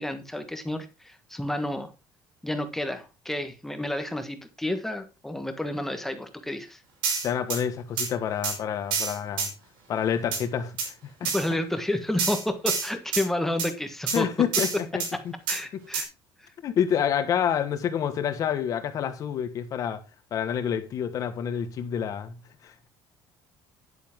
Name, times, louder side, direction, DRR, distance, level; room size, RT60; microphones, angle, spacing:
voice 1, 0.0-1.9 2.4-6.8 11.2-14.3 15.5-16.1, left 1 dB, 5° left, 1.4 m, -30 dB
sound 1, 7.0-7.6 8.0-8.1 8.4-8.6 8.9-9.5 10.3-10.4 10.8-10.9 11.2-11.5 12.2-13.2 13.6-13.7 14.1-14.2 14.5-15.1 15.5-15.6 15.9-16.0, right 5 dB, 80° right, 5.4 m, -28 dB
voice 2, 7.2-9.5 9.9-10.7 11.2-11.3 14.1-15.0 16.6-20.0 20.3-22.4 22.6-22.9, left 8 dB, 45° left, 1.5 m, -28 dB
10.5 x 9.1 x 3.7 m
cardioid pair, 155°, 8 cm